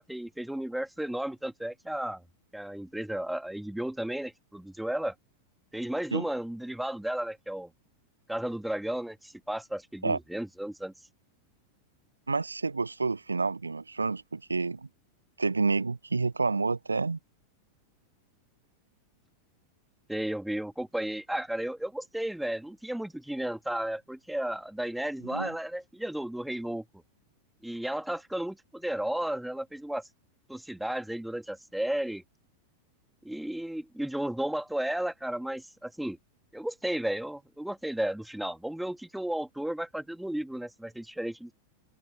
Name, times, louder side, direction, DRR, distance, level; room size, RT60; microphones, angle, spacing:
voice 1, 0.0-2.2 2.5-5.1 5.7-7.7 8.3-10.9 20.1-27.0 27.6-30.1 30.5-32.2 33.2-36.2 36.5-41.5, right 1 dB, ahead, 2.5 m, -33 dB
voice 2, 12.3-14.9 15.4-17.2 25.3-25.5, right 4 dB, 80° right, 1.0 m, -29 dB
figure-of-eight pair, 90°, 0 cm